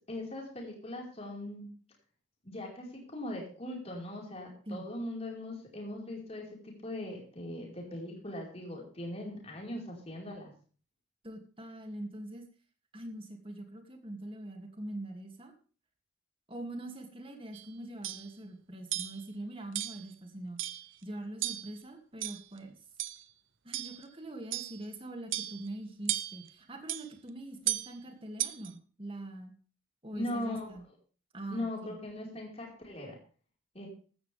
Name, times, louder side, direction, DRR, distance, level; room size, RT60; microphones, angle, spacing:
voice 1, 0.1-1.7 2.4-10.5 30.1-30.8 31.5-33.1 33.7-33.9, left 1 dB, 30° left, -1 dB, 4.7 m, -40 dB
voice 2, 11.2-12.5 12.9-15.5 16.5-20.6 21.0-22.8 23.6-29.5 30.0-30.9 31.3-32.0, right 1 dB, 30° right, 4 dB, 2.5 m, -43 dB
sound 1, 17.5-17.7 18.0-18.3 18.9-19.2 19.7-20.0 20.6-20.9 21.4-21.8 22.2-22.6 23.0-23.2 23.7-24.0 24.5-24.8 25.3-25.7 26.1-26.5 26.9-27.1 27.7-27.9 28.4-28.7, right 13 dB, 90° right, 0.9 m, -35 dB
15.0 x 12.5 x 3.5 m, 0.39 s
head